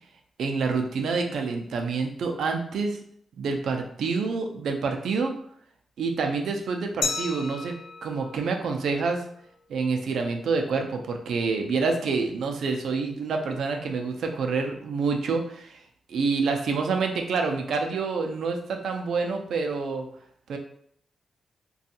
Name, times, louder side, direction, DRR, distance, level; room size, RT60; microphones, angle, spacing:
voice 1, 0.4-3.0 3.4-5.4 6.0-7.8 8.0-9.2 9.7-15.8 16.1-20.1 20.5-20.6, right 4 dB, 80° right, 4 dB, 0.4 m, -27 dB
Glass, 7.0-9.7, left 5 dB, 80° left, 0.4 m, -35 dB
2.5 x 2.3 x 2.7 m, 0.64 s
wide cardioid pair, 175°, 0 cm